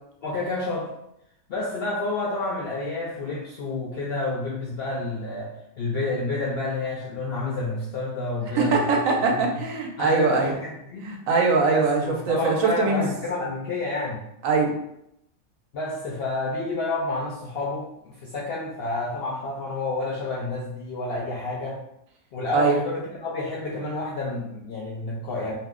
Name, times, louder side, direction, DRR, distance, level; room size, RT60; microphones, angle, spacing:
voice 1, 0.2-0.9 1.5-9.0 9.3-9.4 10.0-11.1 11.7-14.2 15.7-21.8 22.3-25.5, left 2 dB, 70° left, -4 dB, 0.5 m, -29 dB
voice 2, 8.5-10.5 11.0-13.1 14.4-14.7 22.5-22.8, right 4 dB, 75° right, 1 dB, 0.9 m, -22 dB
2.6 x 2.0 x 3.5 m, 0.79 s
omnidirectional pair, 1.5 m